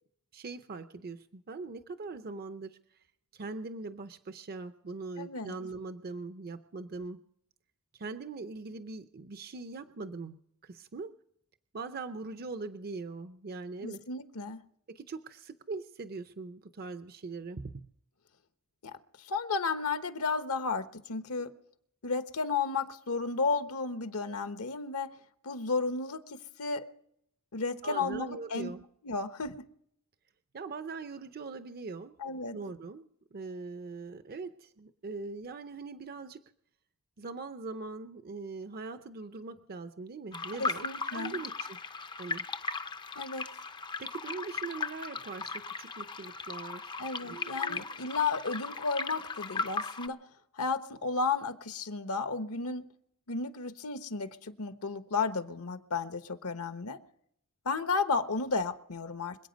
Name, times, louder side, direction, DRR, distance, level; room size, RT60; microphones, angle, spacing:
voice 1, 0.3-3.0 3.3-7.2 7.9-11.1 11.7-14.0 14.9-17.9 27.8-28.8 30.5-32.2 32.5-36.4 37.2-41.8 42.2-42.4 44.0-47.8, right 3 dB, 45° right, 10 dB, 0.6 m, -41 dB
voice 2, 5.2-5.5 13.8-14.6 18.8-21.5 22.0-25.1 25.4-26.9 27.5-28.7 29.0-29.6 32.2-32.6 40.6-41.4 43.2-43.4 47.0-50.2 50.5-52.9 53.3-57.0 57.6-59.4, left 4 dB, 70° left, 10 dB, 1.1 m, -33 dB
sound 1, 40.3-50.1, left 4 dB, 20° left, 0.5 m, -37 dB
26.0 x 8.7 x 5.2 m, 0.71 s
head